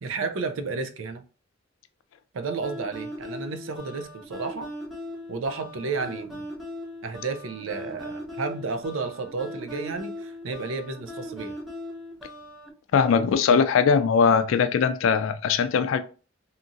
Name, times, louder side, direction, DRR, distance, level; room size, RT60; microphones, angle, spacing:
voice 1, 0.0-1.2 2.3-4.7 5.3-6.5 7.0-11.5, right 4 dB, 80° right, 0.5 m, -32 dB
sound 1, 2.6-12.7, left 1 dB, ahead, 0.8 m, -39 dB
voice 2, 12.9-16.0, left 6 dB, 80° left, 0.3 m, -20 dB
2.8 x 2.7 x 2.4 m
head